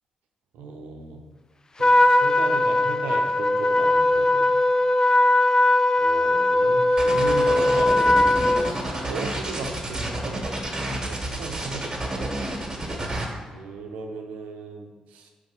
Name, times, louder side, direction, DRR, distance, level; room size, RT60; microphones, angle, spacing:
voice 1, 0.5-1.2 1.8-4.5 6.0-12.3 13.5-15.3, right 4 dB, 85° right, 3 dB, 0.7 m, -36 dB
Trumpet, 1.8-8.7, left 2 dB, 30° left, 0.4 m, -19 dB
sound 1, 7.0-13.3, right 1 dB, 30° right, 1.6 m, -30 dB
5.3 x 3.4 x 5.4 m, 1.4 s
supercardioid pair, 50°, 2 cm